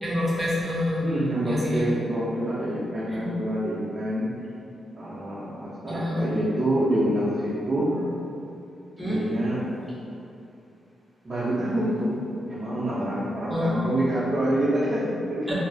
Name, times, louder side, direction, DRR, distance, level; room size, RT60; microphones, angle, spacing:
voice 1, 0.0-1.0 1.5-1.9 3.1-3.3 5.9-6.3 9.0-9.2 13.5-13.9 15.5-15.6, left 1 dB, 5° right, -8 dB, 0.9 m, -27 dB
voice 2, 1.0-4.3 4.9-8.0 9.0-9.6 11.2-12.2 12.5-15.5, right 1 dB, 35° right, -11 dB, 0.6 m, -26 dB
2.3 x 2.0 x 3.8 m, 2.6 s
cardioid pair, 95°, 0 cm